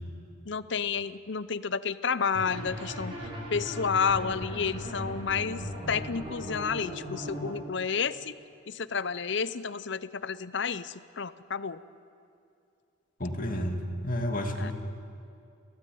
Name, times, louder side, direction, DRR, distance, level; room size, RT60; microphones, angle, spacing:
voice 1, 0.5-3.2 3.5-8.3 8.7-11.8 14.6-14.7, left 6 dB, 60° left, 15 dB, 0.7 m, -31 dB
sound 1, 2.3-7.5, equal, 25° right, 6.2 m, -38 dB
voice 2, 13.2-14.7, equal, 45° left, 3 dB, 2.4 m, -31 dB
28.5 x 17.0 x 9.3 m, 2.5 s
head